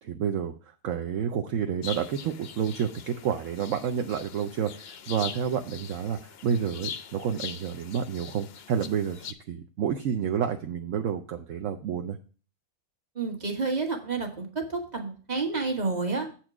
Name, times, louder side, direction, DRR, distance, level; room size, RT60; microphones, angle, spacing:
voice 1, 0.0-12.2, right 8 dB, 65° right, 5 dB, 0.9 m, -30 dB
sound 1, 1.8-9.3, left 8 dB, 60° left, 0.6 m, -42 dB
voice 2, 13.1-16.3, right 4 dB, 30° right, 3 dB, 1.5 m, -30 dB
8.1 x 4.4 x 6.0 m, 0.38 s
omnidirectional pair, 1.6 m